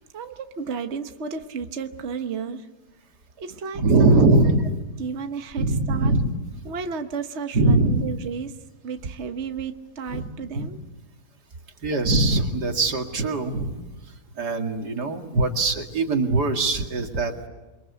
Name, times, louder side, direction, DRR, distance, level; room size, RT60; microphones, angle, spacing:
voice 1, 0.1-2.7 3.4-4.1 5.0-6.1 6.6-8.6 8.8-10.8, right 5 dB, 45° right, 7 dB, 1.4 m, -32 dB
voice 2, 3.7-4.6 5.6-6.3 7.5-8.0 10.1-10.3 10.5-10.7 11.8-17.5, right 2 dB, 85° right, 4 dB, 2.8 m, -21 dB
29.0 x 23.5 x 8.3 m, 1.1 s
omnidirectional pair, 1.7 m